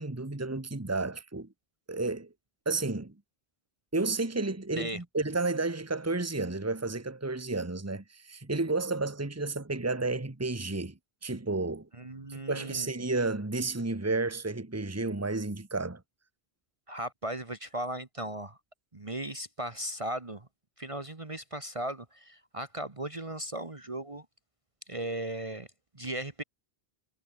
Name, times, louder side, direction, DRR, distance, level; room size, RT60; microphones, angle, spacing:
voice 1, 0.0-1.5 1.9-2.3 2.6-3.2 3.9-11.9 12.3-16.0, right 3 dB, 15° right, 1.5 m, -32 dB
voice 2, 12.0-12.9 16.9-18.6 18.9-20.5 20.8-24.2 24.9-25.7 25.9-26.4, right 1 dB, 30° right, 1.6 m, -37 dB
omnidirectional pair, 1.1 m